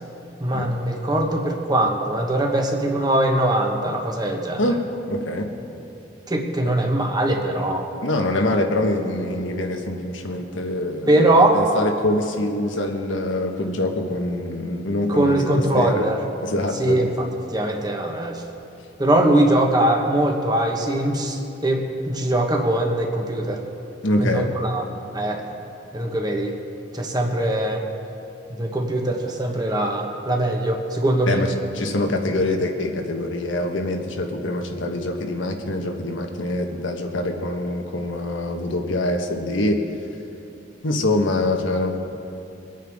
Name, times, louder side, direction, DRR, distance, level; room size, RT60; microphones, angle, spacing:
voice 1, 0.4-4.6 6.3-7.9 11.1-11.6 15.1-16.2 16.8-17.3 17.5-18.4 19.0-23.6 24.2-24.8 25.1-25.4 25.9-26.5 26.9-27.8 28.6-31.4, right 1 dB, 20° right, 2 dB, 1.2 m, -21 dB
voice 2, 5.1-5.5 6.6-6.7 8.0-15.4 15.7-16.0 16.4-17.0 24.0-24.5 31.3-39.8 40.8-41.9, left 1 dB, 85° left, 3 dB, 1.3 m, -24 dB
23.0 x 9.2 x 3.6 m, 2.7 s
head